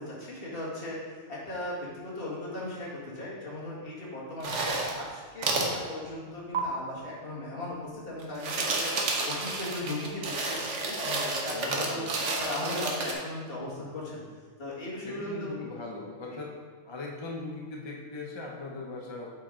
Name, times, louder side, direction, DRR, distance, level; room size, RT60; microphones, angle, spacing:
voice 1, 0.0-12.0 12.4-14.2 14.6-15.6 16.3-16.4, left 1 dB, 50° left, -6 dB, 2.0 m, -38 dB
sound 1, 4.4-5.0 5.4-5.7 6.5-6.6 8.2-13.1, right 3 dB, 75° right, 1.2 m, -30 dB
voice 2, 11.5-12.2 15.0-16.5 16.8-19.3, left 3 dB, 30° left, -1 dB, 0.6 m, -39 dB
8.0 x 4.6 x 3.8 m, 1.5 s
omnidirectional pair, 1.3 m